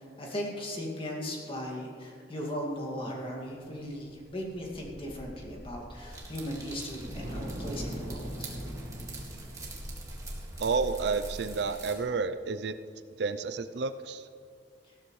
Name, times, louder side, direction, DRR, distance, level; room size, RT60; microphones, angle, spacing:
voice 1, 0.2-8.5, equal, 30° left, -1 dB, 2.1 m, -37 dB
sound 1, 3.8-11.8, equal, 40° right, 2.6 m, -41 dB
sound 2, 6.1-11.9, right 3 dB, 20° right, 1.8 m, -46 dB
voice 2, 10.6-12.8 13.2-14.3, right 4 dB, 65° right, 11 dB, 0.5 m, -30 dB
15.5 x 13.0 x 3.2 m, 2.3 s
head